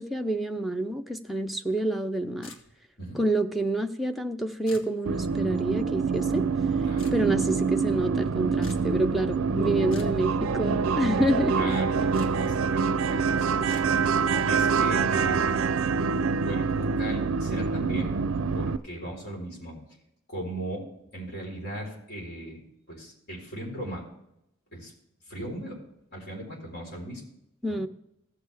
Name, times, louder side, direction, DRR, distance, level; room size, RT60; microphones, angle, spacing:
voice 1, 0.0-2.5 3.1-6.5 7.1-11.8 27.6-27.9, right 1 dB, ahead, 3 dB, 0.5 m, -28 dB
sound 1, 2.4-3.0 4.7-4.9 7.0-7.2 8.6-8.9 9.9-10.2 12.1-12.3 13.7-13.9, left 2 dB, 80° left, 1.6 m, -45 dB
sound 2, 5.1-18.8, right 5 dB, 85° right, 0.4 m, -26 dB
voice 2, 11.2-13.9 14.4-15.6 16.4-18.1 18.5-19.8 20.3-20.9 21.1-22.6 22.9-24.0 24.7-24.9 25.3-25.8 26.1-27.2 27.7-27.8, right 1 dB, 50° left, -1 dB, 4.1 m, -37 dB
15.5 x 6.6 x 3.4 m, 0.81 s
head